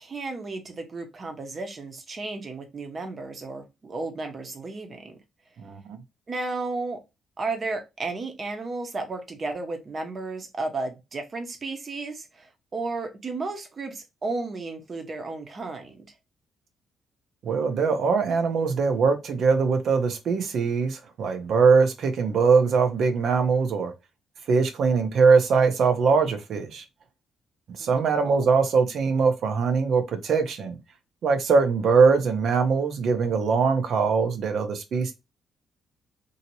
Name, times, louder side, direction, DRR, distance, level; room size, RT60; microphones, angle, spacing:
voice 1, 0.0-5.2 6.3-7.0 7.4-16.1 27.8-28.4, right 3 dB, 40° right, 0.9 m, -33 dB
voice 2, 5.6-6.0 17.4-23.9 24.5-26.8 27.8-30.8 31.2-35.1, right 5 dB, 65° right, 0.7 m, -22 dB
2.8 x 2.7 x 2.8 m
cardioid pair, 90°, 0 cm